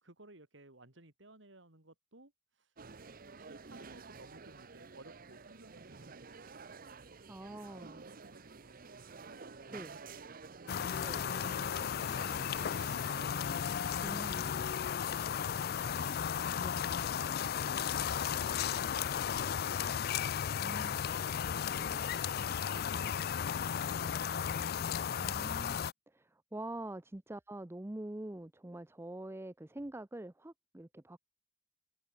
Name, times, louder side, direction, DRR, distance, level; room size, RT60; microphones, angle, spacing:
voice 1, 0.0-2.8 3.3-6.7 7.7-10.7 11.2-13.7 20.6-25.3, right 2 dB, 70° right, 3.4 m, -60 dB
sound 1, 2.8-13.8, right 4 dB, 45° right, 0.9 m, -51 dB
voice 2, 7.3-8.1 9.7-10.0 11.0-11.2 14.0-14.5 16.6-16.8 20.6-21.0 25.2-31.2, right 1 dB, 15° right, 0.5 m, -45 dB
sound 2, 10.7-25.9, left 8 dB, 50° left, 0.4 m, -35 dB
head